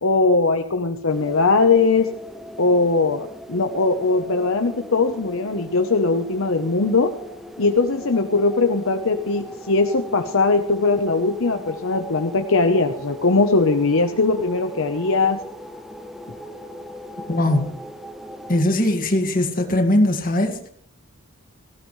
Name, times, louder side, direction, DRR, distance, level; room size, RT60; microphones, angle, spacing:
voice 1, 0.0-2.1 2.6-7.1 7.6-15.4, left 3 dB, 60° left, 6 dB, 0.9 m, -20 dB
sound 1, 1.1-18.6, left 1 dB, ahead, 1.0 m, -39 dB
voice 2, 17.3-17.7 18.5-20.7, left 1 dB, 40° left, 4 dB, 2.0 m, -20 dB
17.5 x 16.0 x 3.3 m, 0.63 s
head